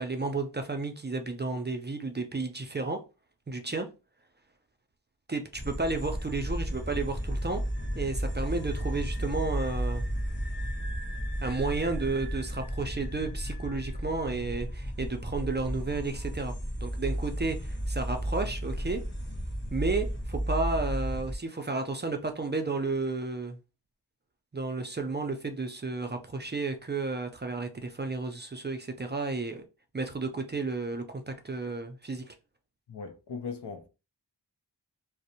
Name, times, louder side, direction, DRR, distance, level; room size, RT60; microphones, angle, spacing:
voice 1, 0.0-3.0 3.5-3.9 5.3-7.6 7.9-10.1 11.4-19.0 19.7-23.6 24.5-29.6 29.9-32.3, right 3 dB, 30° right, 0.3 m, -32 dB
sound 1, 5.5-21.4, equal, 25° left, 0.7 m, -33 dB
voice 2, 32.9-33.9, left 5 dB, 75° left, 0.5 m, -38 dB
2.5 x 2.0 x 2.7 m
wide cardioid pair, 55°, 41 cm